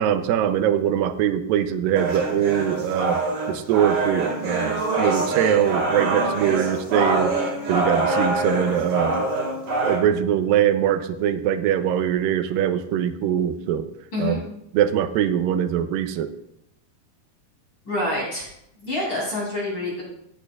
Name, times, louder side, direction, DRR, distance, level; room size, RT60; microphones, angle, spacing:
voice 1, 0.0-3.2 3.5-9.2 9.8-13.9 14.2-14.4 14.7-16.3, right 10 dB, 80° right, 8 dB, 2.2 m, -22 dB
sound 1, 2.0-10.0, right 2 dB, 45° right, 2.6 m, -24 dB
voice 2, 17.9-18.5 18.7-20.0, left 1 dB, 30° left, -5 dB, 3.7 m, -27 dB
16.5 x 8.3 x 2.4 m, 0.79 s
omnidirectional pair, 4.4 m